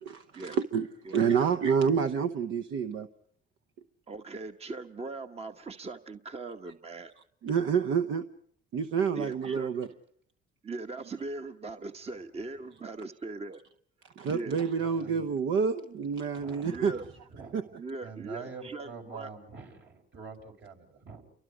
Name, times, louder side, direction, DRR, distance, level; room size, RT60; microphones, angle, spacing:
voice 1, 0.0-3.1 7.4-8.3 8.7-9.9 14.2-17.0 17.5-17.6, right 6 dB, 80° right, 8 dB, 1.0 m, -28 dB
voice 2, 1.1-1.5 4.1-7.1 9.1-9.7 10.6-13.6 14.2-14.6 16.6-17.0 17.8-19.3, right 3 dB, 30° right, 7 dB, 1.0 m, -40 dB
voice 3, 14.8-15.3 16.4-17.7 18.0-21.2, right 5 dB, 65° right, 3 dB, 5.3 m, -46 dB
29.5 x 23.5 x 5.0 m, 0.64 s
cardioid pair, 90°, 20 cm